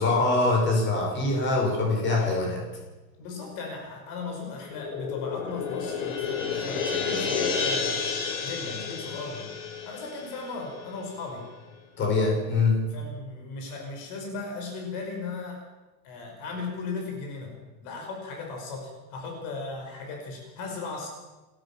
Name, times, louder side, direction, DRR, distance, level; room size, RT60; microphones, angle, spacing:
voice 1, 0.0-2.6 12.0-12.8, left 3 dB, 30° left, 0 dB, 6.2 m, -23 dB
voice 2, 3.2-8.0 8.4-9.5 9.8-11.4 12.9-15.6 16.0-17.6 17.8-21.1, left 4 dB, 55° left, 2 dB, 5.6 m, -36 dB
sound 1, 4.6-11.2, left 5 dB, 80° left, 5.6 m, -31 dB
29.0 x 13.5 x 7.4 m, 1.1 s
supercardioid pair, 170°, 40 cm